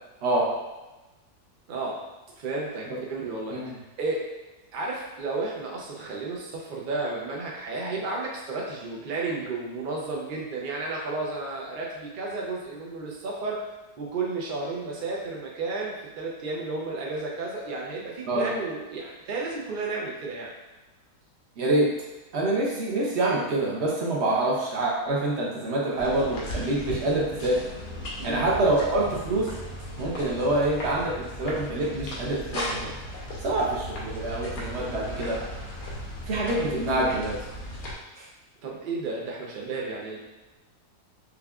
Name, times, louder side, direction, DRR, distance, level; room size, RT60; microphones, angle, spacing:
voice 1, 1.7-2.0 2.4-3.6 4.0-4.3 4.7-13.6 14.0-20.5 28.2-28.5 38.6-40.2, right 3 dB, 75° right, -3 dB, 0.4 m, -32 dB
voice 2, 21.6-21.9 22.3-27.6 28.2-29.6 30.0-32.9 33.4-35.4 36.3-37.4 38.2-38.3, right 2 dB, 55° right, -3 dB, 0.8 m, -26 dB
sound 1, 26.0-37.9, equal, 90° left, 1.4 m, -37 dB
5.1 x 2.2 x 2.3 m, 1.1 s
omnidirectional pair, 1.7 m